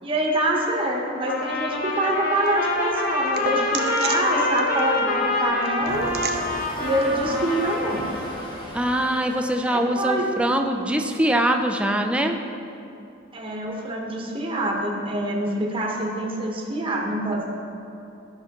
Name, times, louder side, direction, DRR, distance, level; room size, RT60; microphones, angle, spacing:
voice 1, 0.0-6.1 6.8-8.1 9.6-10.3 13.3-17.4, right 1 dB, 25° right, -1 dB, 1.0 m, -25 dB
Trumpet, 1.2-8.4, left 2 dB, 45° left, 1.1 m, -26 dB
sound 1, 1.5-8.3, right 6 dB, 50° right, 0.6 m, -39 dB
sound 2, 5.8-11.0, equal, 25° left, 1.1 m, -38 dB
voice 2, 8.7-12.4, right 1 dB, 5° right, 4 dB, 0.4 m, -23 dB
12.0 x 5.6 x 2.9 m, 2.8 s
head